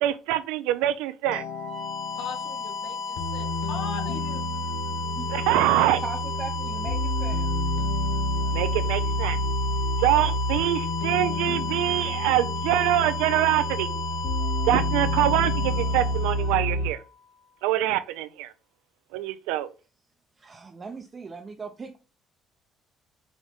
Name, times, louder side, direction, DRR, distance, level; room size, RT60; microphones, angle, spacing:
voice 1, 0.0-1.4 5.3-6.0 8.5-9.4 10.0-13.9 14.7-17.0 17.6-18.5 19.1-19.7, right 13 dB, 85° right, 0.3 m, -24 dB
sound 1, 1.3-16.9, equal, 85° left, 0.6 m, -29 dB
sound 2, 1.4-17.2, left 4 dB, 45° left, 1.9 m, -34 dB
voice 2, 2.1-4.5, left 5 dB, 65° left, 0.9 m, -39 dB
voice 3, 5.8-7.5 20.4-22.0, right 5 dB, 35° right, 0.6 m, -38 dB
5.0 x 2.6 x 3.4 m
supercardioid pair, 75°, 0 cm